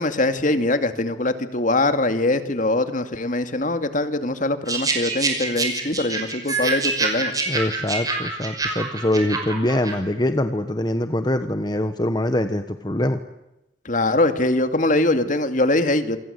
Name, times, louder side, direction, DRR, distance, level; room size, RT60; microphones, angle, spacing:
voice 1, 0.0-7.3 13.8-16.2, left 2 dB, 45° left, 9 dB, 2.3 m, -22 dB
sound 1, 4.7-9.9, right 3 dB, 20° right, 5.8 m, -26 dB
voice 2, 7.5-13.2, left 1 dB, 25° left, 8 dB, 1.2 m, -23 dB
28.0 x 25.5 x 8.2 m, 0.94 s
head